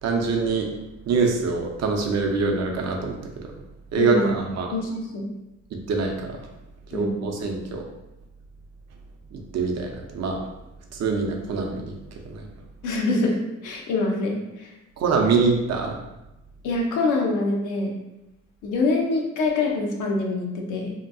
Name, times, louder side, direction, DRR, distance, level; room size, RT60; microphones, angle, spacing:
voice 1, 0.0-0.7 1.1-3.2 3.9-4.7 5.9-6.4 6.9-7.8 9.3-10.4 10.9-11.9 12.2-12.5 15.0-16.0, right 4 dB, 60° right, 2 dB, 0.6 m, -24 dB
voice 2, 4.0-4.4 4.7-5.3 6.9-7.2 12.8-14.7 16.6-17.9 18.6-20.9, left 2 dB, 85° left, 0 dB, 0.6 m, -25 dB
2.8 x 2.2 x 2.6 m, 0.95 s
cardioid pair, 90°, 30 cm